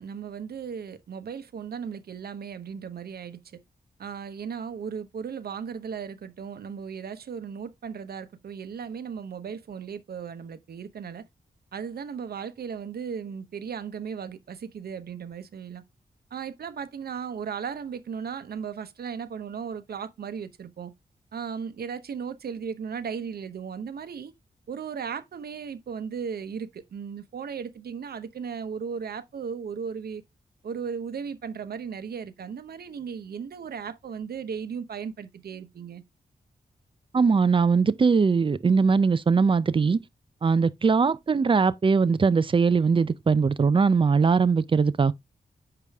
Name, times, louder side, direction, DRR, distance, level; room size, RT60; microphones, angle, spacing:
voice 1, 0.0-3.4 4.0-11.2 11.7-15.8 16.3-20.9 21.3-24.3 24.7-30.2 30.6-36.0, right 6 dB, 75° right, 0.9 m, -36 dB
voice 2, 37.1-40.0 40.4-45.1, right 5 dB, 30° right, 0.5 m, -21 dB
6.8 x 5.0 x 3.5 m
wide cardioid pair, 100°, 16 cm